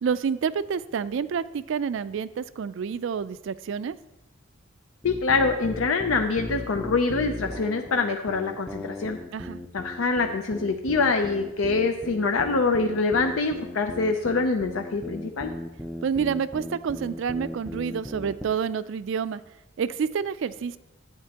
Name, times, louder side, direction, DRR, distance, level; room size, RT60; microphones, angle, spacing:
voice 1, 0.0-4.0 9.3-9.6 16.0-19.4 19.8-20.8, right 6 dB, 65° right, 16 dB, 0.3 m, -28 dB
voice 2, 5.0-9.2 9.7-15.5, left 4 dB, 75° left, 5 dB, 0.5 m, -25 dB
sound 1, 5.0-18.6, left 1 dB, ahead, 0.5 m, -37 dB
11.5 x 8.8 x 2.9 m, 0.96 s
head